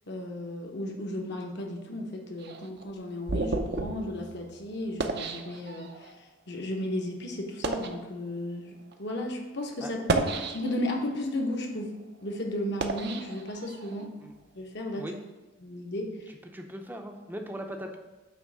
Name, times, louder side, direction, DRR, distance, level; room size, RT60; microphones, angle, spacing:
voice 1, 0.1-11.9 12.2-14.1 14.5-15.1 15.6-16.3, left 1 dB, 55° left, 1 dB, 1.1 m, -34 dB
sound 1, 2.4-6.1 6.8-6.9 7.5-8.0 8.8-8.9 9.9-11.0 11.5-14.0, right 3 dB, 55° right, 0.6 m, -33 dB
voice 2, 16.5-18.0, equal, 10° right, 3 dB, 0.6 m, -39 dB
9.1 x 3.2 x 6.2 m, 1.2 s
head